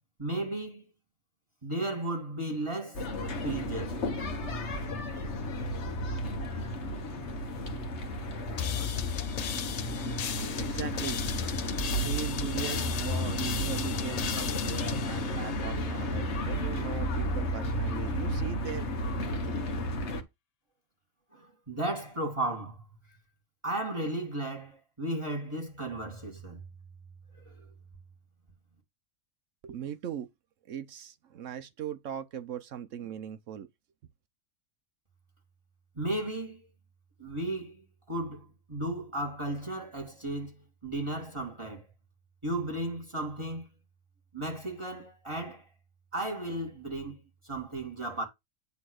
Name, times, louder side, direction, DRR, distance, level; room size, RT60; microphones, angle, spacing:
voice 1, 0.2-0.8 1.6-3.1 3.4-4.0 21.3-22.9 23.6-26.6 27.4-27.6 36.0-36.6 37.2-41.9 42.4-43.7 44.3-45.7 46.1-48.2, right 1 dB, 20° right, 2.3 m, -35 dB
sound 1, 2.9-20.2, left 1 dB, 60° left, 1.4 m, -33 dB
sound 2, 8.6-16.1, left 8 dB, 75° left, 0.3 m, -36 dB
voice 2, 10.6-11.2 11.9-18.9 19.1-19.6 29.6-30.3 30.7-33.7, right 9 dB, 70° right, 1.0 m, -39 dB
9.4 x 3.3 x 6.3 m
omnidirectional pair, 1.4 m